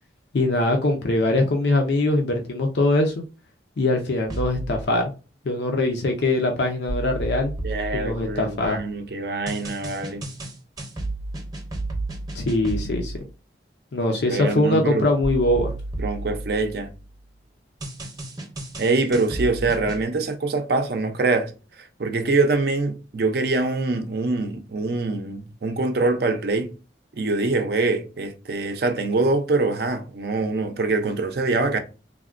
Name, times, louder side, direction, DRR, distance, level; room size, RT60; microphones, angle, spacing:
voice 1, 0.3-3.2 3.8-5.1 5.4-7.5 7.9-8.8 12.3-13.1 13.9-15.7, left 2 dB, 70° left, 0.5 m, -22 dB
sound 1, 4.3-4.8 6.9-8.7 9.5-13.2 15.2-17.1 17.8-20.0, right 2 dB, 20° right, 0.7 m, -32 dB
voice 2, 7.6-10.2 14.1-15.1 16.0-16.9 18.8-21.5 22.0-26.7 27.2-31.8, right 3 dB, 55° right, 0.5 m, -24 dB
3.5 x 2.1 x 2.4 m
head